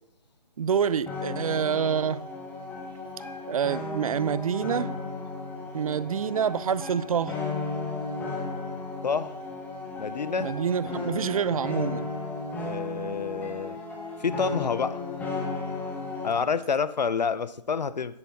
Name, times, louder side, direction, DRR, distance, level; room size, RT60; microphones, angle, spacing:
voice 1, 0.6-2.3 3.5-4.9 5.7-7.4 10.4-12.1, right 7 dB, 55° right, 0.5 m, -27 dB
sound 1, 1.1-16.5, left 3 dB, 10° left, 1.2 m, -35 dB
voice 2, 9.0-9.3 10.0-10.5 12.5-13.8 14.2-15.0 16.2-18.2, left 5 dB, 80° left, 0.7 m, -28 dB
10.0 x 8.3 x 4.1 m
figure-of-eight pair, 145°, 21 cm